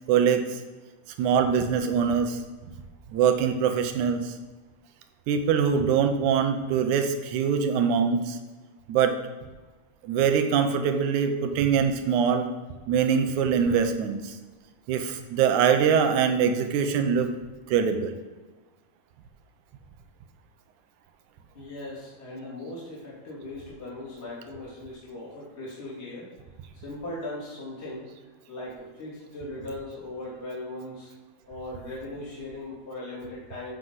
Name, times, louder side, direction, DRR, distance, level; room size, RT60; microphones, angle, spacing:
voice 1, 0.1-0.4 1.2-2.4 3.1-4.3 5.3-8.4 8.9-9.1 10.0-12.5 12.9-14.3 14.9-17.3 17.7-18.1, right 7 dB, 75° right, 7 dB, 2.1 m, -23 dB
voice 2, 21.5-26.3 26.8-28.1 28.5-31.1 31.5-33.7, left 2 dB, 20° left, -7 dB, 3.0 m, -38 dB
14.0 x 6.7 x 3.8 m, 1.3 s
omnidirectional pair, 3.7 m